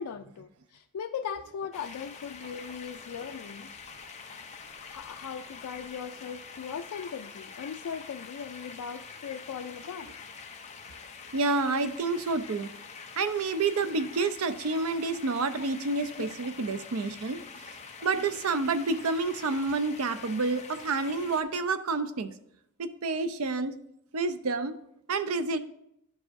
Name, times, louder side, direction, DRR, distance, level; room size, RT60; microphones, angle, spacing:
voice 1, 0.0-3.7 4.8-10.2 15.6-15.7 16.1-16.3, left 7 dB, 90° left, 5 dB, 0.4 m, -39 dB
sound 1, 1.7-21.4, left 5 dB, 30° left, 0.6 m, -46 dB
voice 2, 11.3-12.7 13.2-17.4 18.0-22.3 22.8-23.7 24.1-24.8 25.1-25.6, right 3 dB, 85° right, 10 dB, 0.6 m, -29 dB
11.5 x 4.8 x 2.6 m, 0.79 s
head